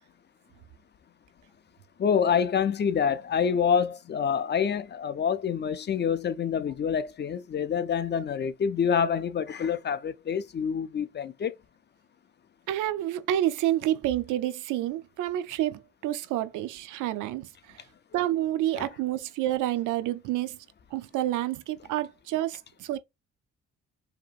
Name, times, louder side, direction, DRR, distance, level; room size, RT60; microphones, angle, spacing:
voice 1, 2.0-11.5 18.8-18.9, left 7 dB, 35° left, 0.5 m, -27 dB
voice 2, 12.7-17.8 18.1-20.6 20.9-23.0, right 13 dB, 80° right, 0.5 m, -29 dB
4.8 x 2.9 x 2.4 m
cardioid pair, 90°, 30 cm